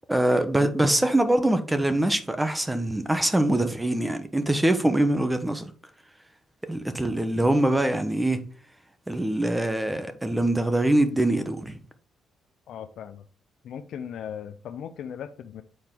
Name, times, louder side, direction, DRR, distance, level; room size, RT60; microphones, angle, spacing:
voice 1, 0.1-5.6 6.7-8.5 9.1-11.7, right 1 dB, 10° right, 1.0 m, -23 dB
voice 2, 12.7-13.2 13.6-15.6, left 8 dB, 70° left, 0.5 m, -38 dB
7.9 x 4.3 x 3.7 m
cardioid pair, 90°, 0 cm